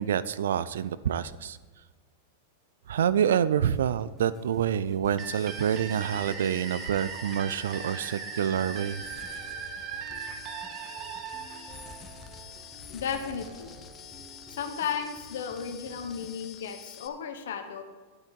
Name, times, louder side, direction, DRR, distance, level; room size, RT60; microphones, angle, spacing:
voice 1, 0.0-1.6 2.9-9.0, right 9 dB, 75° right, 17 dB, 0.4 m, -27 dB
sound 1, 3.7-16.3, left 1 dB, ahead, 2.5 m, -51 dB
sound 2, 5.2-17.1, left 8 dB, 30° left, 1.2 m, -48 dB
sound 3, 5.2-12.8, right 7 dB, 40° right, 1.1 m, -39 dB
voice 2, 12.9-13.8 14.6-17.8, left 7 dB, 75° left, 6 dB, 1.1 m, -34 dB
11.5 x 8.3 x 4.6 m, 1.4 s
hypercardioid pair, 105°, 0 cm